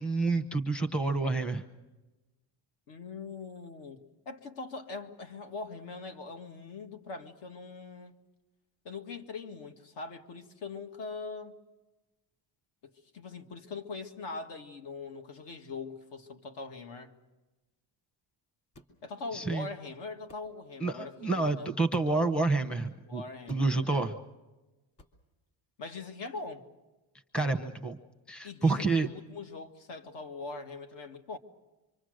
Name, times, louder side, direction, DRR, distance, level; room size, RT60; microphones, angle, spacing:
voice 1, 0.0-1.6 19.3-19.7 20.8-23.2 23.5-24.2 27.3-28.0 28.3-29.1, right 3 dB, ahead, 0.8 m, -28 dB
voice 2, 2.9-8.2 8.8-11.5 13.1-17.1 19.0-21.7 23.1-24.1 25.8-26.6 28.4-31.4, left 4 dB, 60° left, 2.1 m, -42 dB
sound 1, 18.7-19.0 20.3-20.5 21.9-22.3 23.5-23.8 25.0-25.2, left 1 dB, 30° left, 3.0 m, -53 dB
26.5 x 25.0 x 6.5 m
cardioid pair, 150°, 47 cm